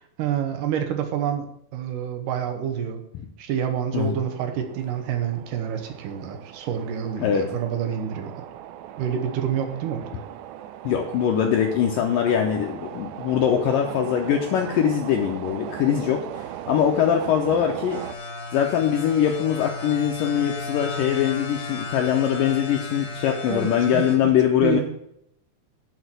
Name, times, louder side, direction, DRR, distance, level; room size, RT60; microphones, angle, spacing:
voice 1, 0.2-1.5 1.7-3.0 3.4-8.3 9.0-10.1 23.5-24.0 24.6-24.8, right 9 dB, 70° right, 6 dB, 2.1 m, -28 dB
sound 1, 3.9-18.2, right 11 dB, 90° right, 2.1 m, -38 dB
voice 2, 10.8-18.0 18.5-24.8, left 9 dB, 80° left, 2 dB, 2.0 m, -22 dB
sound 2, 17.9-24.1, left 2 dB, 30° left, 2.9 m, -34 dB
10.0 x 4.5 x 7.8 m, 0.73 s
omnidirectional pair, 4.9 m